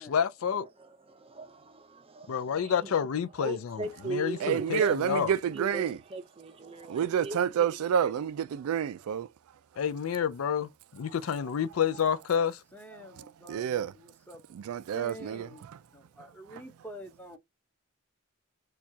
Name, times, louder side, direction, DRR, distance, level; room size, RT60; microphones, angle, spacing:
voice 1, 0.0-0.7 2.3-5.3 9.8-12.6, left 7 dB, 75° left, 0.4 m, -29 dB
voice 2, 0.8-2.9 3.4-7.4 8.0-8.1, right 2 dB, 25° right, 0.5 m, -39 dB
voice 3, 4.4-6.0 6.9-9.3 13.5-13.9 14.5-15.5, right 8 dB, 85° right, 0.3 m, -29 dB
voice 4, 12.7-14.4 14.9-15.6 15.9-17.4, equal, 10° left, 0.8 m, -47 dB
4.4 x 2.3 x 2.7 m
head